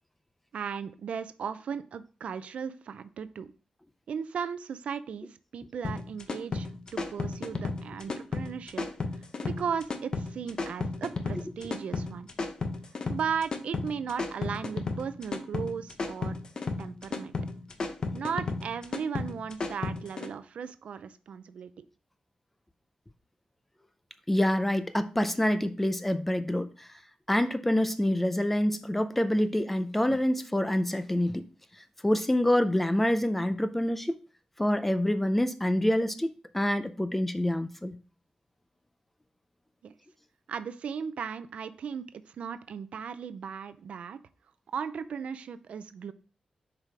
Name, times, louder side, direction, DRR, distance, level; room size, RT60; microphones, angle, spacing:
voice 1, 0.5-3.5 4.1-8.9 9.4-12.3 13.1-16.4 16.8-17.3 18.1-21.9 39.8-39.9 40.5-44.2 44.7-46.1, right 7 dB, 75° right, 0.5 m, -36 dB
sound 1, 5.8-20.3, left 3 dB, 40° left, 0.7 m, -33 dB
voice 2, 24.3-26.9 27.3-31.5 32.0-34.2 34.6-38.0, left 1 dB, 10° left, 0.4 m, -26 dB
7.5 x 4.8 x 3.3 m
wide cardioid pair, 170°, 2 cm